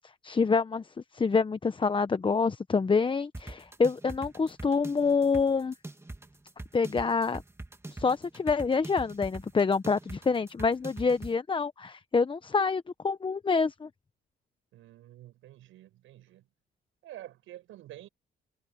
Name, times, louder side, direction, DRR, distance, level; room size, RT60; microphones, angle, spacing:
voice 1, 0.2-0.9 1.1-5.7 6.7-7.4 7.9-13.9, left 4 dB, 25° left, 0.9 m, -27 dB
sound 1, 3.3-11.3, right 2 dB, 15° right, 2.6 m, -43 dB
voice 2, 14.7-16.5 17.0-18.1, right 14 dB, 90° right, 7.7 m, -48 dB
cardioid pair, 90°, 20 cm